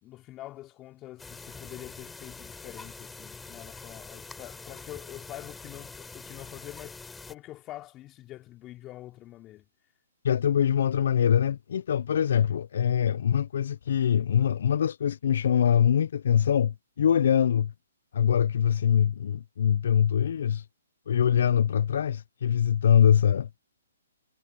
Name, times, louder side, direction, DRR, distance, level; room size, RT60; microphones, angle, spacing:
voice 1, 0.0-9.7, left 15 dB, 25° left, 3.1 m, -45 dB
sound 1, 1.2-7.3, left 4 dB, 5° left, 3.7 m, -45 dB
voice 2, 10.2-17.7 18.1-20.6 21.1-23.5, left 9 dB, 60° left, 0.5 m, -23 dB
hypercardioid pair, 140°, 0 cm